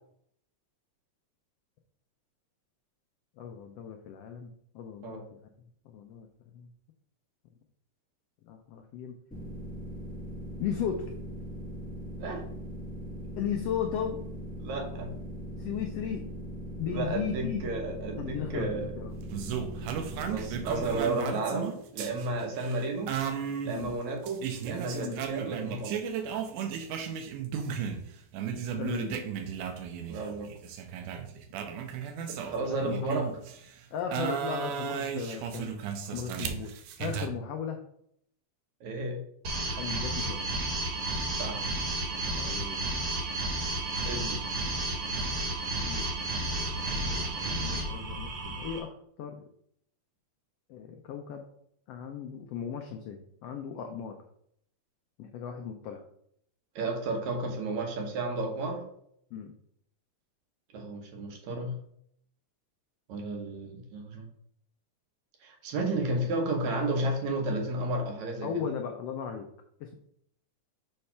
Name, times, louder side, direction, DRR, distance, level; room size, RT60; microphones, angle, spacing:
voice 1, 3.4-5.4 5.9-6.3 6.5-6.7 8.5-9.2 10.6-11.1 13.4-14.2 15.6-16.3 16.8-17.7 18.2-19.1 23.7-23.9 25.0-25.2 28.8-29.2 32.7-33.3 33.9-35.7 36.1-36.7 37.0-37.8 39.8-40.4 42.3-42.8 45.8-46.1 46.9-49.4 50.7-51.5 51.9-54.2 55.2-56.0 59.3-59.5 68.4-69.5 69.8-69.9, left 8 dB, 80° left, 4 dB, 1.4 m, -36 dB
sound 1, 9.3-21.0, equal, 5° left, 0.8 m, -40 dB
voice 2, 14.6-15.1 16.9-18.9 20.3-23.1 23.6-26.0 30.1-30.5 32.3-33.3 38.8-39.2 41.4-41.6 44.1-44.4 56.8-58.9 60.7-61.8 63.1-64.3 65.4-68.7, right 2 dB, 70° right, 3 dB, 2.4 m, -32 dB
sound 2, 19.3-28.0 28.3-33.6 34.1-37.3, right 7 dB, 90° right, 2.2 m, -35 dB
sound 3, 39.4-48.8, right 2 dB, 50° right, 2.1 m, -32 dB
6.9 x 3.3 x 5.6 m, 0.69 s
omnidirectional pair, 3.5 m